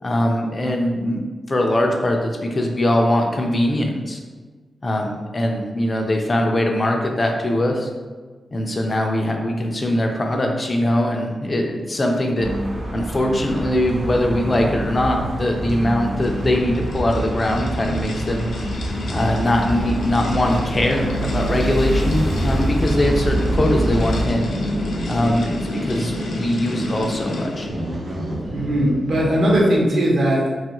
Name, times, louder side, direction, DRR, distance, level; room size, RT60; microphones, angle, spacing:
voice 1, 0.0-1.2 1.5-4.2 4.8-7.9 8.5-12.5 12.9-18.5 19.1-24.5 25.1-27.7, left 1 dB, 25° left, 2 dB, 0.3 m, -21 dB
sound 1, 12.4-24.2, right 1 dB, 30° right, 0.5 m, -26 dB
sound 2, 15.7-27.8, left 3 dB, 85° left, 0.4 m, -31 dB
sound 3, 22.7-29.9, right 1 dB, 80° right, 1.0 m, -29 dB
voice 2, 28.5-30.5, equal, 55° right, -3 dB, 0.7 m, -18 dB
3.0 x 2.4 x 2.9 m, 1.4 s
wide cardioid pair, 160°, 0 cm